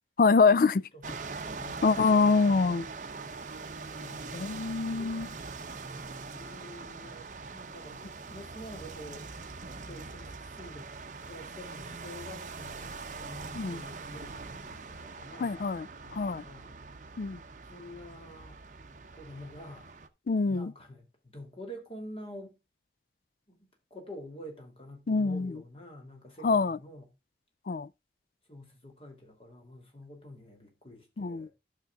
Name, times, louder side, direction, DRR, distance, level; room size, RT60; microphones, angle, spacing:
voice 1, 0.2-0.9 1.8-2.9 4.3-5.3 13.6-13.8 15.4-15.9 16.1-16.4 17.2-17.4 20.3-20.7 25.1-25.6 26.4-26.8 27.7-27.9 31.2-31.5, left 4 dB, 55° left, 0.4 m, -25 dB
voice 2, 0.9-1.9 3.8-5.4 6.2-9.3 9.7-10.9 11.2-15.8 16.0-16.8 17.7-18.6 19.1-19.9 20.5-22.6 23.5-27.1 28.5-31.5, equal, 30° left, 2.8 m, -48 dB
sound 1, 1.0-20.1, right 4 dB, 45° right, 0.7 m, -42 dB
12.0 x 6.6 x 2.4 m
head